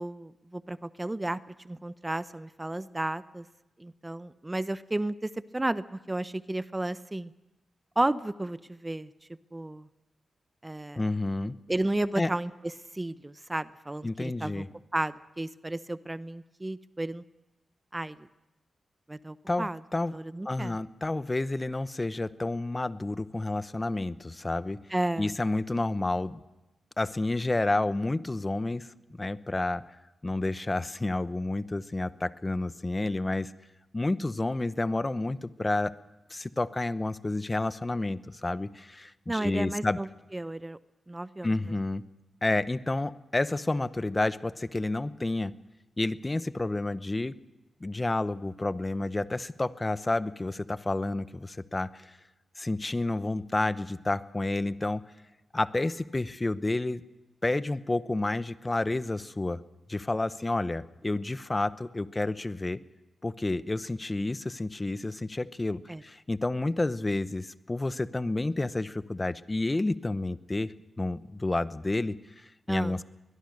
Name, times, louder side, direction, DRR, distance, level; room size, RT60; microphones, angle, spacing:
voice 1, 0.0-1.4 1.6-3.5 3.8-7.3 8.0-9.1 9.5-9.9 10.6-11.1 11.7-14.6 14.9-17.2 17.9-18.3 19.1-19.8 20.1-20.8 24.9-25.3 39.3-40.1 40.3-40.8 41.1-41.5 65.9-66.0 72.7-73.0, right 1 dB, 20° right, 15 dB, 0.7 m, -33 dB
voice 2, 11.0-11.5 12.2-12.3 14.0-14.7 19.5-20.1 20.4-24.8 25.2-26.4 27.0-28.9 29.2-30.0 30.2-33.5 33.9-35.9 36.3-40.0 41.4-42.0 42.4-45.5 46.0-47.3 47.8-52.1 52.6-55.0 55.5-57.0 57.4-59.6 59.9-62.8 63.2-73.0, left 2 dB, 30° left, 15 dB, 0.9 m, -30 dB
22.5 x 21.5 x 6.6 m, 1.0 s
cardioid pair, 50°, 0 cm